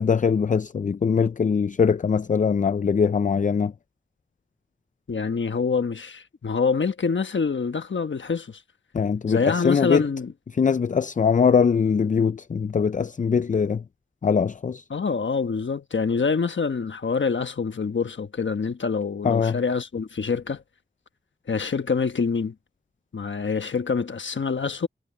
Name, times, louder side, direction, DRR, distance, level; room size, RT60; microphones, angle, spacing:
voice 1, 0.0-3.7 8.9-10.1 10.5-13.8 14.2-14.8 19.2-19.6, left 6 dB, 45° left, 0.4 m, -22 dB
voice 2, 5.1-8.6 9.3-10.3 14.9-20.6 21.5-22.5 23.1-24.9, left 5 dB, 85° left, 1.2 m, -26 dB
wide cardioid pair, 50°, 19 cm